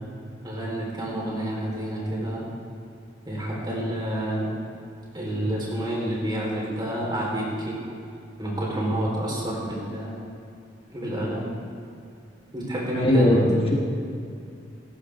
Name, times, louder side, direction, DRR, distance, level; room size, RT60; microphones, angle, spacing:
voice 1, 0.4-2.5 3.3-4.5 5.1-7.8 8.4-10.2 10.9-11.5 12.5-13.4, right 1 dB, 25° right, -4 dB, 4.1 m, -29 dB
voice 2, 12.9-13.7, left 1 dB, 30° left, -2 dB, 1.3 m, -20 dB
17.5 x 13.5 x 3.6 m, 2.5 s
head